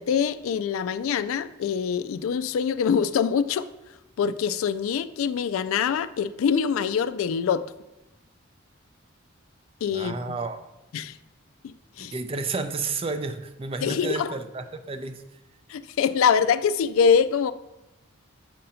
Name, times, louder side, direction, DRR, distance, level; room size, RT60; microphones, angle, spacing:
voice 1, 0.0-3.7 4.2-7.6 9.8-10.4 10.9-11.2 11.6-12.1 13.8-14.3 15.7-17.5, left 7 dB, 80° left, 12 dB, 0.3 m, -24 dB
voice 2, 9.9-10.6 12.0-15.4, right 3 dB, 25° right, 9 dB, 0.4 m, -31 dB
7.4 x 2.7 x 5.5 m, 0.95 s
head